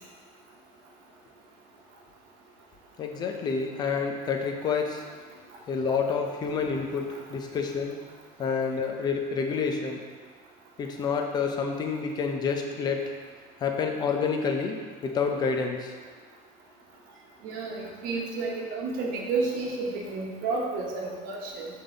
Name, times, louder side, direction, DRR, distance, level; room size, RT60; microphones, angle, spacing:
voice 1, 3.0-5.0 5.7-8.0 8.4-10.1 10.8-13.0 13.6-15.9, left 5 dB, 25° left, 3 dB, 0.5 m, -28 dB
voice 2, 17.4-21.7, right 3 dB, 60° right, -1 dB, 1.2 m, -31 dB
6.8 x 3.9 x 3.9 m, 1.5 s
cardioid pair, 165°, 17 cm